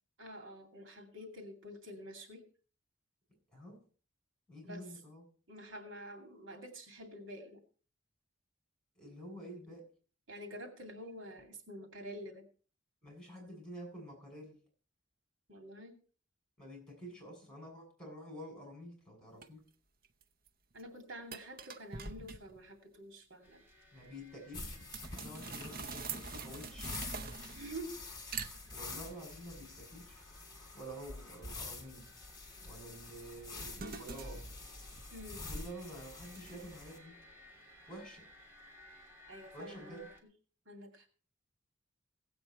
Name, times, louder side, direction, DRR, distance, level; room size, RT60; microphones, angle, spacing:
voice 1, 0.2-2.4 4.6-4.9 5.5-7.6 10.3-12.4 15.5-15.9 20.7-23.6 27.5-28.0 35.1-35.4 39.3-40.0 40.7-41.1, equal, 80° right, 4 dB, 2.5 m, -48 dB
voice 2, 4.5-5.2 9.0-9.8 13.0-14.6 16.6-19.6 23.9-26.9 28.7-30.2 30.7-32.0 32.6-34.7 35.5-37.2 37.9-38.3 39.5-40.1, equal, 5° left, 0 dB, 7.9 m, -49 dB
sound 1, 19.4-19.5 20.0-20.5 20.8-20.9 21.3-22.7 24.9-27.9 28.3-29.1 32.8-35.9 36.4-36.7, right 5 dB, 50° right, 0.8 m, -45 dB
sound 2, 23.4-40.2, equal, 15° right, 2.7 m, -61 dB
sound 3, 24.5-37.0, left 2 dB, 20° left, 3.1 m, -47 dB
16.5 x 8.7 x 4.4 m, 0.40 s
head